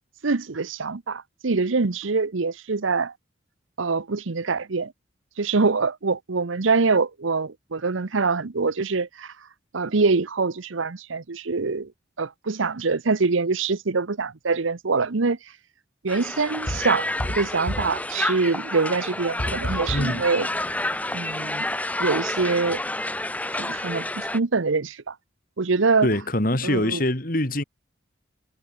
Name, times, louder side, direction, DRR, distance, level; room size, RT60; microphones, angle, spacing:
voice 1, 0.2-3.1 3.8-4.9 5.4-9.3 9.7-11.9 12.2-15.4 16.0-17.1 17.3-20.5 21.1-21.7 22.0-22.8 23.6-25.1 25.6-26.1 26.6-27.0, right 4 dB, 85° right, 0.9 m, -24 dB
Crowd, 16.1-24.4, left 1 dB, 10° left, 4.3 m, -29 dB
sound 1, 16.7-18.0 19.4-20.2, equal, 65° left, 5.2 m, -30 dB
voice 2, 19.9-20.3 26.0-27.6, left 1 dB, 45° left, 2.9 m, -24 dB
head